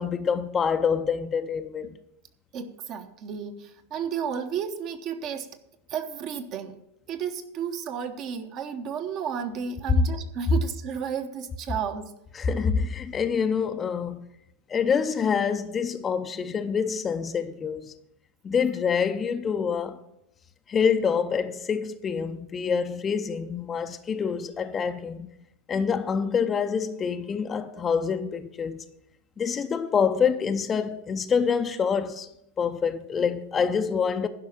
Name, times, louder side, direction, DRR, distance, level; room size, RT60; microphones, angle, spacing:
voice 1, 0.0-2.0 12.4-14.3 14.7-17.9 18.4-20.0 20.7-25.3 25.7-28.8 29.4-32.3 32.6-34.3, left 6 dB, 20° left, 0.6 m, -26 dB
voice 2, 2.5-5.6 5.9-6.8 7.1-12.1, right 7 dB, 35° right, 1.0 m, -33 dB
11.5 x 5.7 x 8.6 m
figure-of-eight pair, 90°, 0 cm